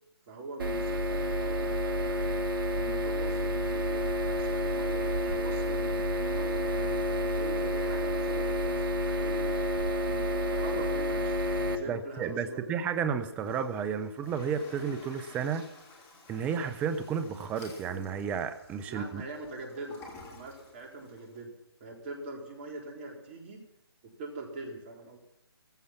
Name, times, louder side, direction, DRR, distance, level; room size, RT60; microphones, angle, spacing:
voice 1, 0.3-2.3 2.7-9.5 10.1-12.7 18.9-20.0 20.2-21.5 21.8-23.6 24.0-25.2, right 3 dB, 30° right, 1 dB, 4.1 m, -43 dB
sound 1, 0.6-11.8, equal, 55° right, 1.8 m, -29 dB
voice 2, 11.9-15.7 16.3-19.2, right 7 dB, 10° right, 10 dB, 0.7 m, -32 dB
Toilet flush, 13.2-21.4, left 3 dB, 15° left, 3.3 m, -51 dB
16.5 x 15.0 x 5.9 m, 0.81 s
figure-of-eight pair, 145°, 13 cm